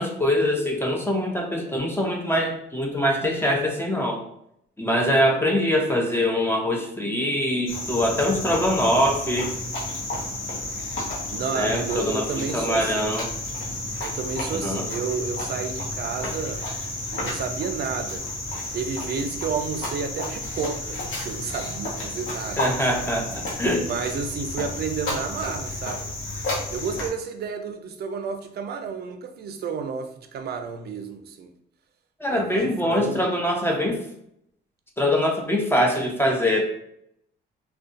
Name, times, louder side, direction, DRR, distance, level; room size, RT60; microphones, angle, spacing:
voice 1, 0.0-4.2 4.8-9.5 11.5-12.2 12.5-13.3 14.5-14.8 22.6-23.9 32.2-34.0 35.0-36.6, equal, 10° left, 0 dB, 0.5 m, -23 dB
Cricket, 7.7-27.1, left 2 dB, 85° left, 0.8 m, -31 dB
voice 2, 11.3-13.1 14.0-16.6 17.1-18.3 18.7-22.7 23.8-26.1 26.7-31.5 32.3-33.3, right 6 dB, 55° right, 7 dB, 0.4 m, -31 dB
2.6 x 2.2 x 2.5 m, 0.75 s
cardioid pair, 90°, 20 cm